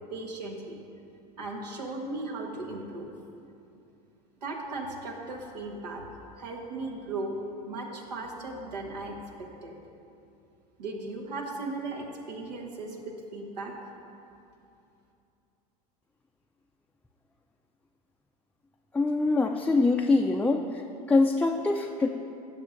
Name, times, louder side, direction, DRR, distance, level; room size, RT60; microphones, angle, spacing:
voice 1, 0.1-0.8 1.4-3.1 4.4-7.4 7.6-9.7 10.8-13.9, right 2 dB, 85° right, 0 dB, 1.3 m, -37 dB
voice 2, 18.9-20.6 21.1-22.1, left 3 dB, 5° left, 2 dB, 0.4 m, -23 dB
16.5 x 6.8 x 2.6 m, 2.6 s
hypercardioid pair, 85°, 20 cm